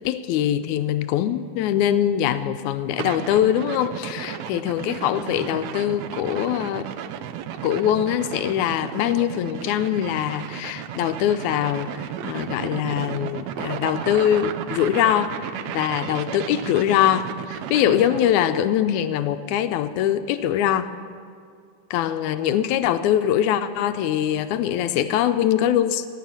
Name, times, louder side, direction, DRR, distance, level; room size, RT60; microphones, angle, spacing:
voice 1, 0.0-6.9 7.6-20.9 21.9-26.1, left 10 dB, 80° left, 10 dB, 1.8 m, -23 dB
sound 1, 3.0-18.4, right 10 dB, 75° right, 1.7 m, -34 dB
19.0 x 9.3 x 7.3 m, 2.2 s
omnidirectional pair, 3.7 m